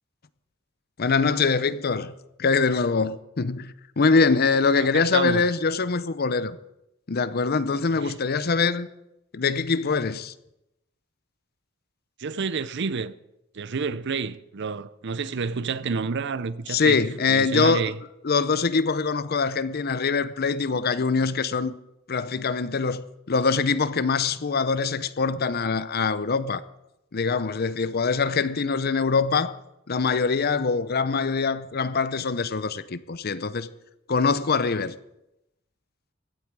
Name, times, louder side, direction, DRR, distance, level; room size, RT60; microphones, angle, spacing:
voice 1, 1.0-2.1 2.4-6.6 7.1-8.9 9.3-10.3 16.7-17.8 18.2-21.8 22.1-26.6 27.1-29.6 29.9-33.7 34.1-35.0, left 4 dB, 50° left, 0.7 m, -23 dB
voice 2, 4.8-5.5 7.9-8.2 12.2-13.1 13.5-17.0 17.3-18.0, right 5 dB, 60° right, 0.6 m, -29 dB
16.0 x 12.5 x 4.7 m
head